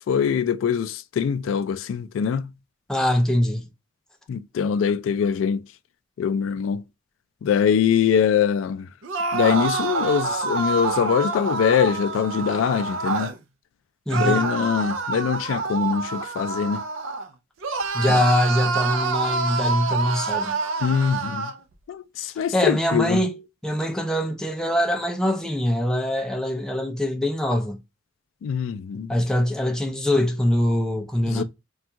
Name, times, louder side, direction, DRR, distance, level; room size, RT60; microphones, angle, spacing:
voice 1, 0.1-2.5 4.3-5.6 6.2-6.8 7.4-8.9 9.3-13.3 14.1-16.8 18.1-18.2 20.8-21.5 21.9-23.2 28.4-29.1 31.3-31.4, left 7 dB, 80° left, 0.3 m, -23 dB
voice 2, 2.9-3.7 14.1-14.5 17.9-20.6 22.2-27.8 29.1-31.4, left 1 dB, 5° left, 0.4 m, -23 dB
sound 1, 9.0-13.4 14.1-17.3 17.6-21.6, right 4 dB, 80° right, 0.4 m, -27 dB
3.4 x 2.3 x 2.7 m
head